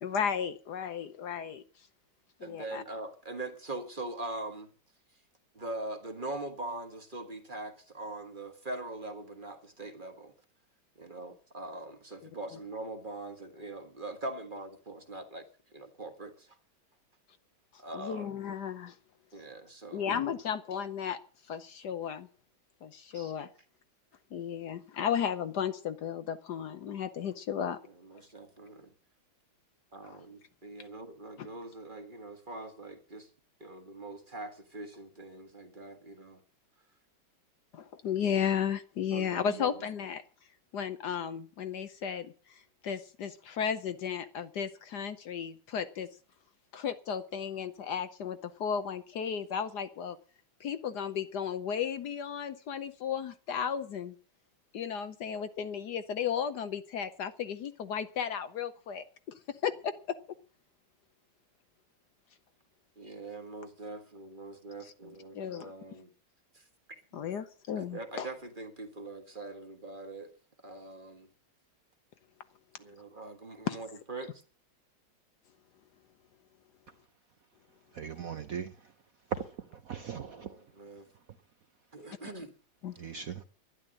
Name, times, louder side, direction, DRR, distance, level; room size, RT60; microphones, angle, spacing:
voice 1, 0.0-1.6 2.4-2.8 17.9-19.0 19.9-21.2 21.5-22.3 22.8-23.5 24.3-27.8 30.0-30.2 31.4-31.5 37.7-40.2 40.7-46.1 46.7-50.2 50.6-54.1 54.7-59.0 59.6-60.2 64.8-64.9 65.3-65.7 67.1-68.3 73.7-73.8 82.8-82.9, left 8 dB, 65° left, 1.2 m, -34 dB
voice 2, 2.4-4.7 5.5-10.3 11.0-15.4 15.7-16.5 17.8-18.3 19.3-20.1 23.1-23.3 28.0-28.9 29.9-33.3 33.6-36.4 39.1-39.8 63.0-66.1 66.5-67.0 67.8-70.3 70.6-71.3 72.8-74.4 80.0-81.1 81.9-82.5 83.1-83.2, right 2 dB, 25° right, 1.5 m, -42 dB
voice 3, 77.9-78.7 79.9-80.5 83.0-83.4, right 8 dB, 60° right, 1.0 m, -39 dB
11.5 x 11.0 x 7.6 m
omnidirectional pair, 2.2 m